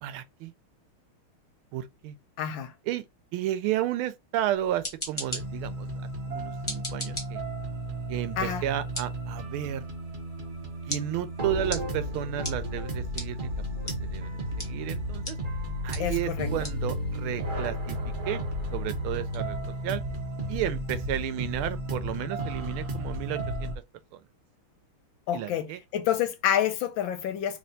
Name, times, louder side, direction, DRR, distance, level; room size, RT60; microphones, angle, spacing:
voice 1, 0.0-0.5 1.7-2.2 2.9-3.0 3.3-5.9 6.3-7.4 8.1-9.9 10.9-13.5 14.0-15.4 15.8-18.0 18.3-18.4 18.7-20.0 20.5-23.7 24.1-24.2 25.3-25.8, right 12 dB, 80° right, 1.4 m, -32 dB
voice 2, 2.4-2.7 8.4-8.6 16.0-16.5 25.3-27.6, left 10 dB, 75° left, 1.2 m, -28 dB
sound 1, 4.5-21.4, left 1 dB, 20° left, 1.0 m, -43 dB
sound 2, 5.3-23.8, equal, 60° right, 0.5 m, -33 dB
3.3 x 3.0 x 3.9 m
omnidirectional pair, 2.4 m